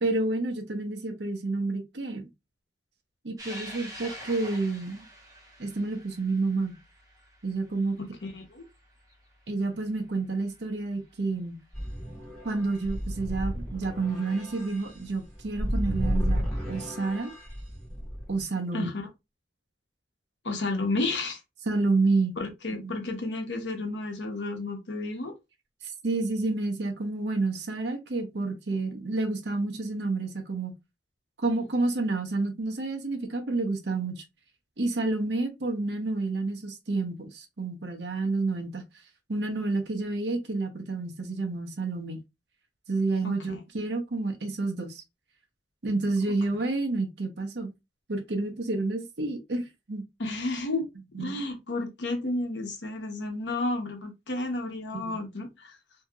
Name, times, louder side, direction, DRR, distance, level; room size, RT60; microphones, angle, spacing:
voice 1, 0.0-2.3 3.2-5.0 5.6-6.8 7.4-8.0 9.5-11.6 12.4-17.3 18.3-18.9 21.7-22.4 22.8-22.9 25.8-30.8 31.4-34.2 34.8-38.9 39.3-42.2 42.9-45.0 45.8-47.7 48.1-49.6 49.9-50.0 51.1-51.4 54.9-55.2, right 3 dB, 70° right, 0.8 m, -29 dB
sound 1, 3.4-10.1 10.5-10.6 11.8-11.9 14.1-14.2 15.6-15.9, equal, 20° right, 1.0 m, -46 dB
voice 2, 8.3-8.7 18.7-19.1 20.4-21.4 22.4-25.3 43.2-43.3 50.2-50.9 51.2-55.8, left 2 dB, 85° left, 0.9 m, -31 dB
sound 2, 11.7-18.4, equal, ahead, 1.4 m, -32 dB
2.8 x 2.8 x 2.3 m
head